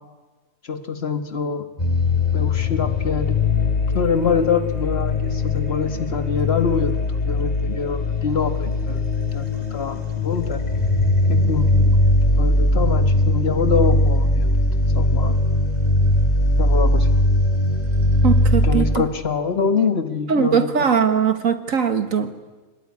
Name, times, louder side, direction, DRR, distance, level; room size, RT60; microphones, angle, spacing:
voice 1, 0.6-1.7 2.3-3.4 3.9-7.0 7.3-10.6 11.3-12.0 12.4-14.5 14.9-15.3 16.6-17.1 18.6-20.7, left 5 dB, 45° left, 9 dB, 1.7 m, -24 dB
sound 1, 1.8-19.0, left 1 dB, 25° left, 3.3 m, -20 dB
voice 2, 18.2-19.0 20.3-22.3, right 7 dB, 65° right, 10 dB, 1.9 m, -20 dB
25.0 x 20.0 x 9.7 m, 1.3 s
omnidirectional pair, 1.5 m